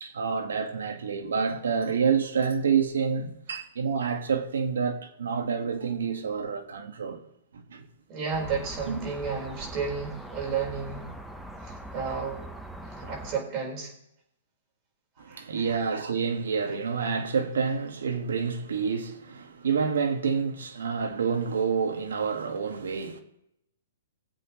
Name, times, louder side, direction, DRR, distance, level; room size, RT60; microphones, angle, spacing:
voice 1, 0.0-7.2 7.5-7.9 8.9-9.0 15.2-23.2, right 6 dB, 75° right, 1.7 m, -28 dB
voice 2, 8.1-11.1 11.6-12.4 12.8-13.9 15.3-15.4, right 5 dB, 35° right, 4.7 m, -32 dB
sound 1, 8.3-13.3, right 1 dB, ahead, 1.1 m, -41 dB
21.0 x 7.9 x 3.2 m
hypercardioid pair, 130°, 0 cm